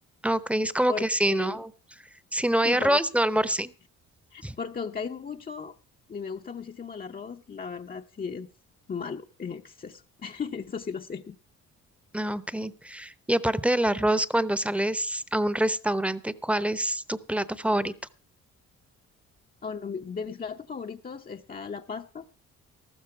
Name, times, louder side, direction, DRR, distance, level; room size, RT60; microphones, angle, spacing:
voice 1, 0.2-1.7 2.3-3.7 4.4-4.6 12.1-17.9, right 1 dB, 5° right, 15 dB, 0.8 m, -26 dB
voice 2, 0.9-1.6 2.6-3.0 4.3-5.7 6.1-8.5 8.9-11.4 19.6-22.2, left 6 dB, 30° left, 3 dB, 0.7 m, -36 dB
14.0 x 13.0 x 4.6 m, 0.35 s
cardioid pair, 90°, 30 cm